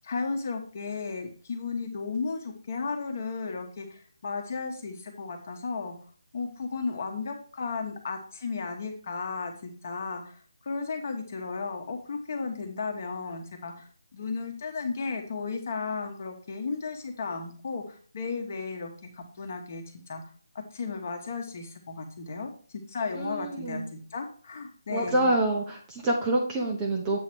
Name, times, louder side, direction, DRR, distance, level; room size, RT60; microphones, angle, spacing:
voice 1, 0.0-5.9 6.3-10.4 10.6-20.2 20.7-22.5 22.9-25.3, left 4 dB, 35° left, 4 dB, 1.2 m, -34 dB
voice 2, 23.1-23.8 24.9-27.2, right 1 dB, 10° right, -1 dB, 0.7 m, -27 dB
8.2 x 3.2 x 6.0 m, 0.43 s
hypercardioid pair, 170°, 2 cm